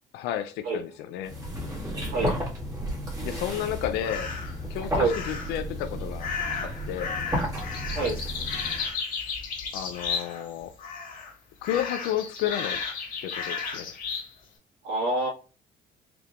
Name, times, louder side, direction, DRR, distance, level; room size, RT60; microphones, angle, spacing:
voice 1, 0.1-1.3 3.2-4.3 4.7-6.3 6.6-7.2 9.7-10.7 11.6-12.8 13.2-13.9, left 11 dB, 90° left, 0.5 m, -32 dB
sound 1, 1.2-8.9, equal, 20° right, 1.9 m, -33 dB
sound 2, 4.0-4.6 5.1-5.6 6.2-10.5 10.8-11.3 11.6-14.3, left 5 dB, 60° left, 1.9 m, -33 dB
voice 2, 14.8-15.3, right 2 dB, 75° right, 2.0 m, -26 dB
4.6 x 3.4 x 2.5 m
cardioid pair, 110°, 17 cm